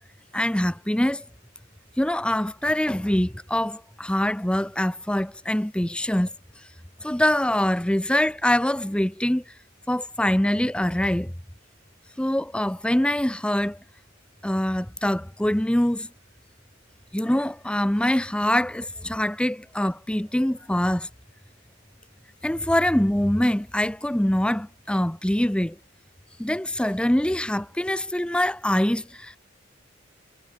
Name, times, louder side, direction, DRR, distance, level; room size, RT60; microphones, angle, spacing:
voice 1, 0.3-1.2 2.0-6.3 7.0-9.4 9.9-11.3 12.2-13.8 14.4-16.1 17.1-21.1 22.4-25.8 26.4-29.4, left 1 dB, 5° left, 0.6 m, -24 dB
head